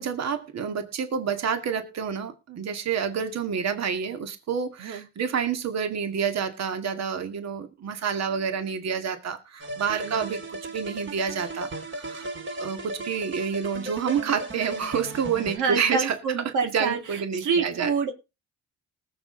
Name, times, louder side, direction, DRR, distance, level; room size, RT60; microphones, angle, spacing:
voice 1, 0.0-12.3 12.6-16.2 16.7-17.9, right 7 dB, 60° right, 7 dB, 2.2 m, -28 dB
sound 1, 9.6-15.6, right 1 dB, 40° right, 2.7 m, -36 dB
voice 2, 15.5-18.1, right 5 dB, 80° right, 6 dB, 2.2 m, -27 dB
19.5 x 7.5 x 3.9 m, 0.27 s
cardioid pair, 90°, 30 cm